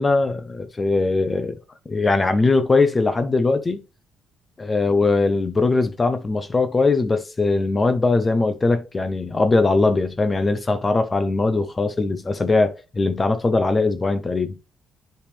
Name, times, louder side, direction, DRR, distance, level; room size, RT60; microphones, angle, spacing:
voice 1, 0.0-1.6 1.9-3.8 4.6-14.6, left 3 dB, 25° left, 0.7 m, -20 dB
10.0 x 3.4 x 3.3 m
cardioid pair, 90°, 0 cm